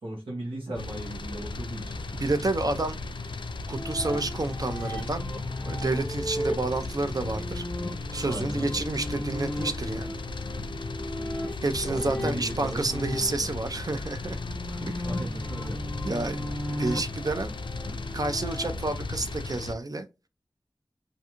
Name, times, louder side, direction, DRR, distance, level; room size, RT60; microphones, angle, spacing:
voice 1, 0.0-2.0 8.2-8.8 11.0-11.5 11.8-13.3 14.7-16.1, right 1 dB, 85° right, 1.0 m, -38 dB
sound 1, 0.8-19.7, left 3 dB, 65° left, 0.3 m, -36 dB
voice 2, 2.1-3.0 3.7-5.4 5.7-7.6 8.1-10.2 11.6-14.4 14.9-15.0 16.0-17.5 18.1-20.1, right 2 dB, 45° right, 0.4 m, -30 dB
sound 2, 3.7-18.7, left 1 dB, 20° left, 0.6 m, -36 dB
2.5 x 2.2 x 2.8 m
wide cardioid pair, 45°, 9 cm